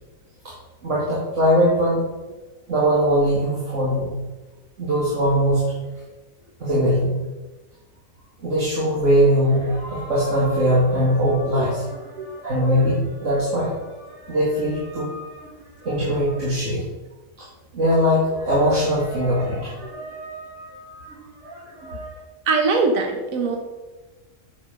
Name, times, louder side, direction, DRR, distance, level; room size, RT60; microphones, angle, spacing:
voice 1, 0.8-2.0 2.7-4.1 4.8-5.6 6.6-7.2 8.4-15.5 15.8-16.8 17.7-22.1, equal, 65° right, -7 dB, 2.4 m, -21 dB
voice 2, 22.5-23.6, right 4 dB, 85° right, 3 dB, 1.4 m, -22 dB
7.2 x 7.2 x 5.2 m, 1.1 s
omnidirectional pair, 1.4 m